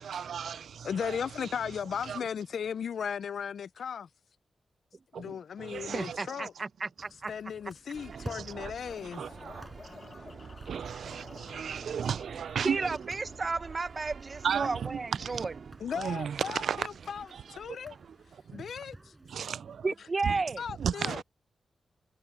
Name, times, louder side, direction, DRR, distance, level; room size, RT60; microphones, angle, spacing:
voice 1, 0.0-1.5 2.0-2.2 5.1-6.5 8.1-8.7 9.0-10.3 10.6-13.1 14.4-15.5 15.9-18.7 19.2-19.9 20.2-20.4 20.8-21.2, right 7 dB, 75° right, 0.3 m, -36 dB
voice 2, 0.8-4.1 5.1-6.5 7.3-9.2 15.8-18.0 18.5-19.1 20.6-21.2, left 7 dB, 70° left, 0.5 m, -36 dB
voice 3, 5.8-7.3 12.6-15.5 19.8-20.6, right 3 dB, 30° right, 0.9 m, -33 dB
sound 1, 7.0-20.1, right 2 dB, 15° right, 5.6 m, -53 dB
sound 2, 7.9-18.6, right 6 dB, 55° right, 5.1 m, -49 dB
sound 3, 8.9-14.8, left 3 dB, 30° left, 1.3 m, -52 dB
wide cardioid pair, 170°, 0 cm